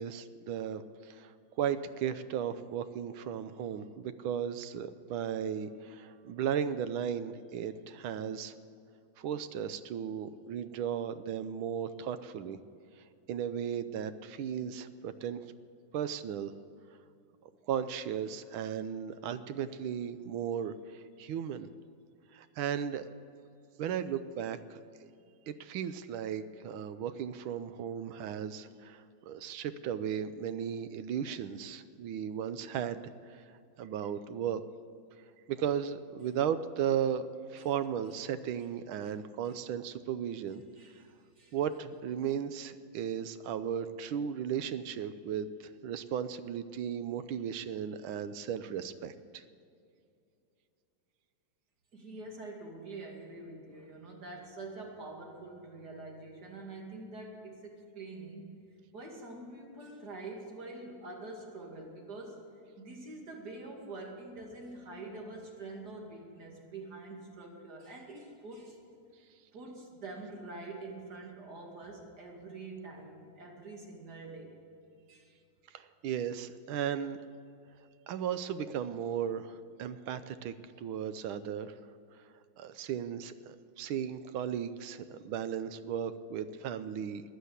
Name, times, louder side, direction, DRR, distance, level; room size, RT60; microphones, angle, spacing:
voice 1, 0.0-1.3 1.6-8.5 9.2-12.6 13.3-15.4 15.9-16.5 17.7-21.7 22.3-23.0 23.8-24.8 25.5-33.0 33.3-33.4 33.8-34.6 35.5-40.6 41.5-49.4 75.7-77.2 78.1-81.7 82.6-87.2, right 8 dB, 90° right, 12 dB, 1.6 m, -35 dB
voice 2, 40.8-41.6 51.9-58.5 58.9-62.4 62.8-68.8 69.5-74.6 75.1-75.3, right 2 dB, 55° right, 0 dB, 2.8 m, -45 dB
14.5 x 10.0 x 8.2 m, 2.6 s
omnidirectional pair, 2.2 m